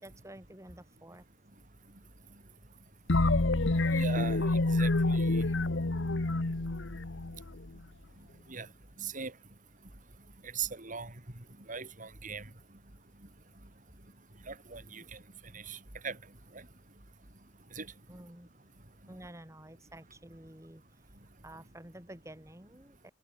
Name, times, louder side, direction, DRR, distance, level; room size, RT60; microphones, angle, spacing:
voice 1, 0.0-1.2 18.1-18.5 19.1-20.8 21.4-23.1, right 1 dB, 15° right, 3.3 m, -50 dB
sound 1, 3.1-7.8, left 2 dB, 85° left, 1.2 m, -28 dB
voice 2, 3.9-5.5 8.5-8.7 9.0-9.3 10.5-11.1 11.7-12.5 14.5-15.2 15.5-15.8 16.0-16.2 16.5-16.6 17.8-17.9, right 5 dB, 45° right, 3.6 m, -39 dB
open air
head